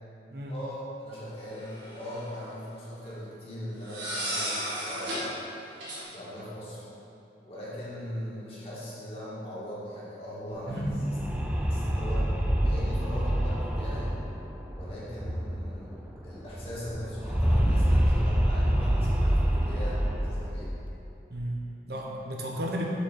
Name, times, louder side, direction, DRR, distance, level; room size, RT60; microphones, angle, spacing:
voice 1, 0.5-5.4 6.1-6.8 7.4-14.1 14.7-15.9 16.2-20.8, equal, 30° left, -8 dB, 1.9 m, -40 dB
sound 1, 1.6-2.3 3.8-5.3 5.8-6.0, equal, 85° right, 1.7 m, -33 dB
sound 2, 10.6-15.9 16.2-16.3 16.5-20.9, equal, 5° right, 0.4 m, -26 dB
voice 2, 21.3-22.8, equal, 60° right, -1 dB, 0.9 m, -34 dB
6.9 x 4.6 x 6.5 m, 2.9 s
head